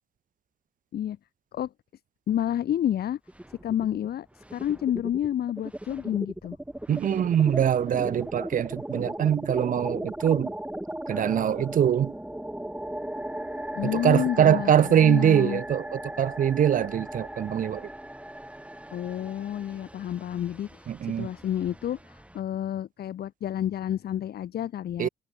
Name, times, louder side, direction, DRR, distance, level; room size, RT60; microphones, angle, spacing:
voice 1, 2.3-3.2 3.6-4.3 4.5-6.6 13.8-15.6 18.9-20.9 21.2-25.1, left 10 dB, 55° left, 0.6 m, -29 dB
sound 1, 3.3-4.1 4.4-22.4, right 1 dB, 5° right, 7.4 m, -38 dB
voice 2, 6.9-10.5 11.1-12.1 13.8-17.9 20.9-21.3 25.0-25.1, right 9 dB, 45° right, 0.5 m, -23 dB
cardioid pair, 90°, 20 cm